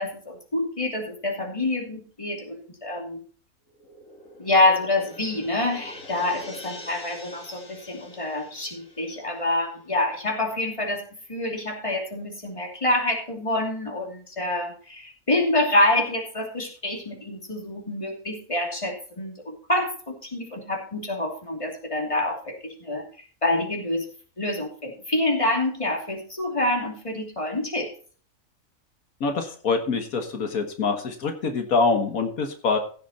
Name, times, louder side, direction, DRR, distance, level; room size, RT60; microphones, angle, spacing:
voice 1, 0.0-3.2 4.4-11.0 11.3-23.0 23.4-24.0 24.4-27.9, left 2 dB, 20° left, 1 dB, 2.9 m, -26 dB
sound 1, 3.7-10.3, left 2 dB, 70° left, 2.6 m, -45 dB
voice 2, 29.2-32.8, left 4 dB, 85° left, 5 dB, 1.9 m, -25 dB
15.5 x 6.8 x 4.2 m, 0.42 s
omnidirectional pair, 1.4 m